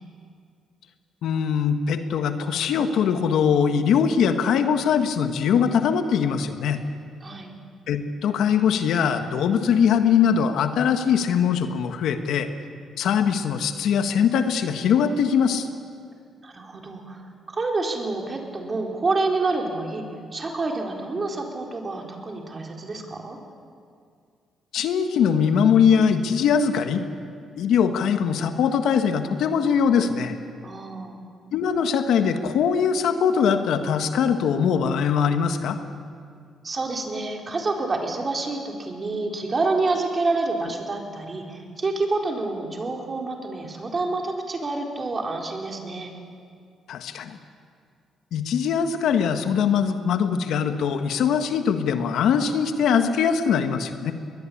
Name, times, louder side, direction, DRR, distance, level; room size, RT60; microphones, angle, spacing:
voice 1, 1.2-6.8 7.9-12.5 13.0-15.7 24.7-27.0 27.6-30.4 31.5-35.8 46.9-47.4 48.3-54.1, left 7 dB, 75° left, 7 dB, 1.6 m, -21 dB
voice 2, 7.2-7.5 16.4-20.1 20.3-23.4 30.6-31.2 36.6-46.1, right 3 dB, 35° right, 1 dB, 4.2 m, -28 dB
22.0 x 20.5 x 8.7 m, 2.2 s
cardioid pair, 90°, 0 cm